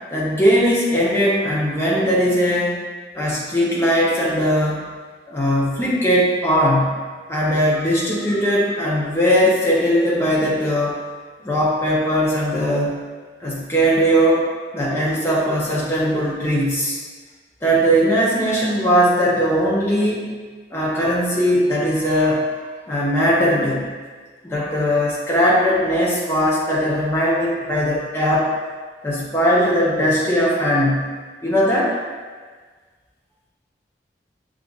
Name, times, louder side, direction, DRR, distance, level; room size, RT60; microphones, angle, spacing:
voice 1, 0.1-2.8 3.1-4.8 5.3-7.0 7.3-11.0 11.4-13.0 13.4-14.5 14.7-17.0 17.6-20.3 20.7-22.5 22.8-23.9 24.4-28.5 29.0-31.1 31.4-32.0, equal, 15° left, -5 dB, 0.7 m, -19 dB
6.7 x 2.5 x 2.3 m, 1.5 s
head